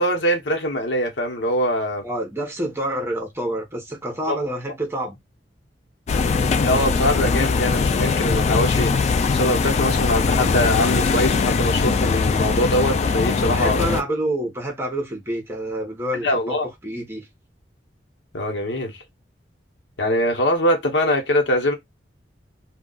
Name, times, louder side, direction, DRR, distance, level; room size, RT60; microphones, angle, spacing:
voice 1, 0.0-2.0 4.3-4.4 6.6-14.0 16.2-16.7 18.3-19.0 20.0-21.7, left 1 dB, 80° left, 0.9 m, -23 dB
voice 2, 2.0-5.2 13.5-17.3, right 1 dB, 15° right, 0.9 m, -28 dB
sound 1, 6.1-14.0, left 4 dB, 40° left, 0.3 m, -21 dB
2.3 x 2.3 x 3.8 m
head